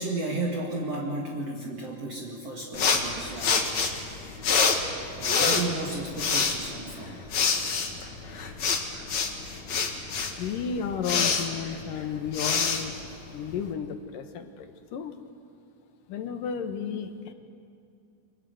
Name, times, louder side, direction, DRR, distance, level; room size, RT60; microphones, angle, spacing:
voice 1, 0.0-3.7 4.0-4.2 4.9-7.4, right 2 dB, 50° right, -1 dB, 2.8 m, -34 dB
sound 1, 2.7-13.7, left 5 dB, 55° left, 3.1 m, -27 dB
voice 2, 10.4-15.2 16.1-17.3, left 7 dB, 70° left, 7 dB, 3.0 m, -33 dB
30.0 x 24.5 x 8.0 m, 2.4 s
omnidirectional pair, 4.0 m